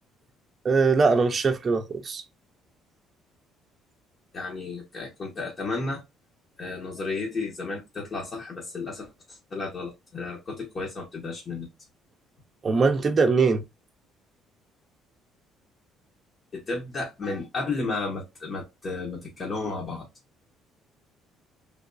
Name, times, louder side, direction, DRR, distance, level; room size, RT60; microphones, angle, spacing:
voice 1, 0.6-2.2 12.6-13.6, right 4 dB, 35° right, 0.6 m, -21 dB
voice 2, 4.3-6.0 6.6-11.7 16.5-20.1, left 3 dB, 40° left, 1.0 m, -33 dB
3.3 x 2.8 x 2.6 m
cardioid pair, 100°, 0 cm